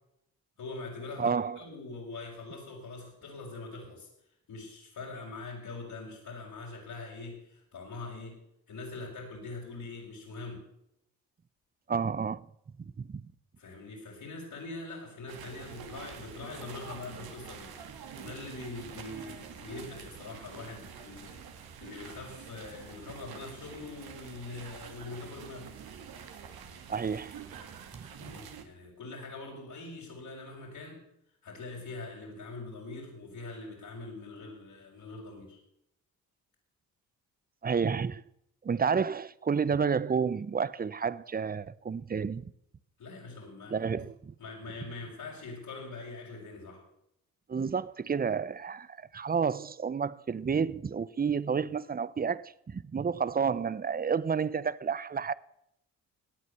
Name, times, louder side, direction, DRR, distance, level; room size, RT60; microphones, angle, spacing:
voice 1, 0.6-4.1 4.5-8.4 8.7-10.7 13.6-17.7 18.2-21.4 21.8-25.7 28.1-31.0 31.4-35.6 43.0-44.1 44.4-46.8, left 3 dB, 65° left, 5.4 m, -43 dB
voice 2, 1.2-1.6 11.9-12.5 13.0-13.2 26.9-27.4 27.9-28.1 37.6-38.2 38.6-42.5 43.7-44.3 47.5-55.3, right 6 dB, 25° right, 0.7 m, -30 dB
sound 1, 15.3-28.6, right 7 dB, 75° right, 2.1 m, -47 dB
17.5 x 9.2 x 6.9 m
supercardioid pair, 65°, 37 cm